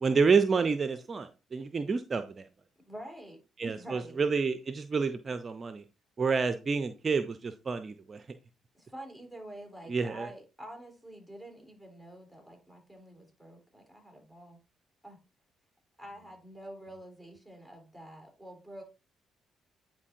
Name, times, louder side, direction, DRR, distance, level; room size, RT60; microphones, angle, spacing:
voice 1, 0.0-2.4 3.6-5.8 6.2-8.2 9.9-10.3, right 5 dB, 40° right, 10 dB, 0.5 m, -29 dB
voice 2, 2.8-4.2 8.7-14.6 15.0-15.2 16.0-18.8, right 1 dB, 10° left, 1 dB, 3.4 m, -47 dB
9.6 x 4.5 x 2.6 m, 0.30 s
hypercardioid pair, 50°, 0 cm